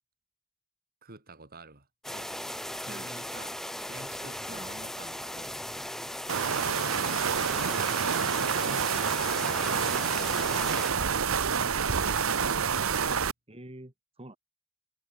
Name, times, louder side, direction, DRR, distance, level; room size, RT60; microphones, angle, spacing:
voice 1, 1.0-2.3 2.8-3.6 3.9-5.6 8.1-12.7, right 2 dB, 45° right, 4.1 m, -48 dB
sound 1, 2.0-10.9, left 1 dB, ahead, 0.6 m, -38 dB
voice 2, 2.9-3.2 4.5-4.7 10.2-10.4 13.5-14.4, right 1 dB, 30° right, 3.8 m, -47 dB
Engine, 3.9-12.7, left 2 dB, 30° left, 3.9 m, -55 dB
sound 2, 6.3-13.3, right 6 dB, 85° right, 1.0 m, -28 dB
head